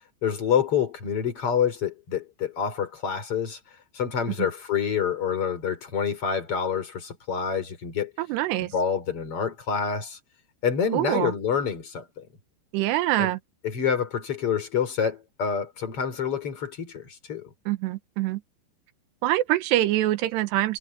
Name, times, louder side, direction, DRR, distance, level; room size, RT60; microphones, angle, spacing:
voice 1, 0.2-3.6 3.9-8.1 8.7-10.2 10.6-12.3 13.2-13.3 13.6-17.5, left 7 dB, 35° left, 4.3 m, -27 dB
voice 2, 8.2-8.7 10.9-11.3 12.7-13.4 17.7-18.4 19.2-20.8, right 15 dB, 80° right, 3.2 m, -24 dB
omnidirectional pair, 4.9 m